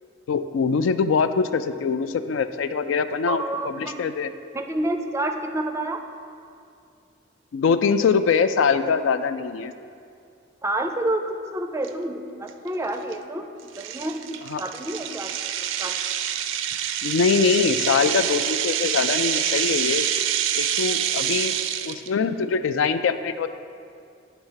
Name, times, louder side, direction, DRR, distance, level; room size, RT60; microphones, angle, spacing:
voice 1, 0.3-4.3 7.5-9.7 14.5-14.6 17.0-20.1 20.6-21.5 21.8-23.5, left 5 dB, 80° left, 11 dB, 0.3 m, -23 dB
voice 2, 3.3-4.0 4.5-6.0 10.6-13.5 13.8-15.3 15.6-16.0, right 1 dB, 15° right, 6 dB, 0.4 m, -29 dB
sound 1, 11.8-11.9 12.5-12.7 13.1-13.2 13.7-22.1, right 10 dB, 80° right, 0.4 m, -26 dB
10.0 x 3.5 x 5.6 m, 2.4 s
head